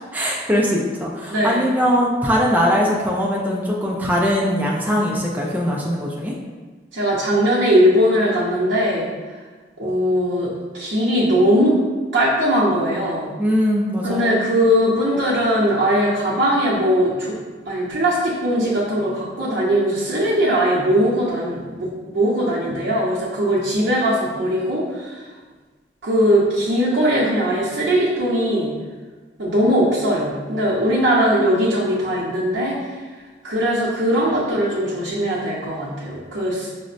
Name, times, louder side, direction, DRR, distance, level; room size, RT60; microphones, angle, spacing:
voice 1, 0.1-6.3 13.4-14.4, equal, 10° right, -3 dB, 0.3 m, -21 dB
voice 2, 1.3-1.6 6.9-9.1 9.8-11.7 12.1-13.3 14.0-17.3 17.7-25.2 26.0-28.7 29.4-32.7 33.4-36.7, equal, 85° right, -8 dB, 0.7 m, -20 dB
5.0 x 2.0 x 2.5 m, 1.4 s
head